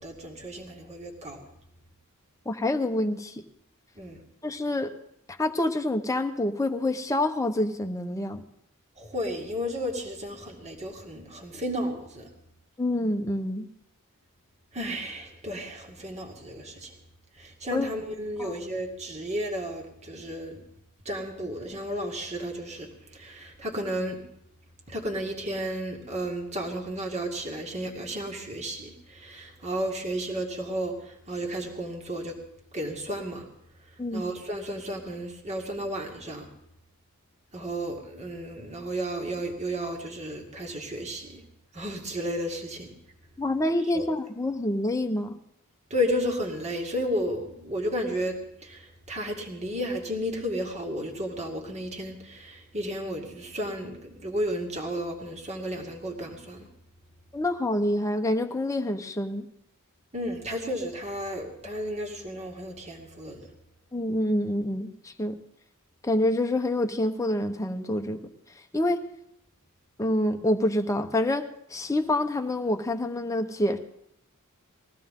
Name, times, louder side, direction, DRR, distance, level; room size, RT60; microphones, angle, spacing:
voice 1, 0.0-1.5 4.0-4.2 9.0-12.3 14.7-17.0 17.3-20.6 21.0-24.2 24.9-32.4 32.7-33.5 33.8-36.5 37.5-41.4 41.7-42.9 43.8-44.1 45.9-56.7 60.1-63.5, equal, 30° right, 1 dB, 2.2 m, -33 dB
voice 2, 2.5-3.3 4.4-4.9 5.4-8.4 12.8-13.7 17.7-17.9 18.4-18.5 34.0-34.2 43.4-45.4 57.3-59.5 63.9-65.3 66.0-68.2 68.7-69.0 70.0-71.4 71.7-73.8, left 1 dB, 15° left, 5 dB, 0.9 m, -27 dB
21.0 x 15.5 x 3.8 m, 0.76 s
head